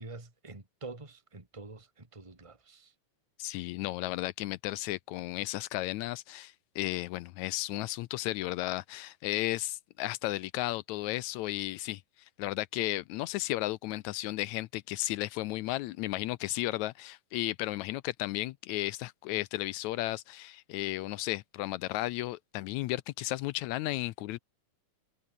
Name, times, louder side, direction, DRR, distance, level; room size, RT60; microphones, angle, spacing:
voice 1, 0.0-2.9, right 3 dB, 10° right, 2.4 m, -46 dB
voice 2, 3.4-12.0 12.4-24.4, left 17 dB, 80° left, 1.8 m, -34 dB
omnidirectional pair, 3.6 m